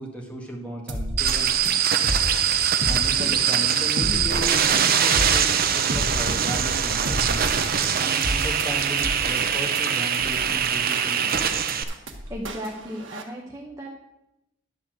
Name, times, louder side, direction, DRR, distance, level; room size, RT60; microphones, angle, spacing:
voice 1, 0.0-1.5 2.9-7.5 8.0-11.7, equal, 5° left, -1 dB, 1.6 m, -35 dB
sound 1, 0.9-13.2, equal, 70° right, 1.4 m, -31 dB
sound 2, 1.2-11.8, right 8 dB, 50° right, 0.7 m, -23 dB
voice 2, 12.3-13.9, equal, 15° right, -1 dB, 1.0 m, -35 dB
11.0 x 4.3 x 7.7 m, 0.89 s
head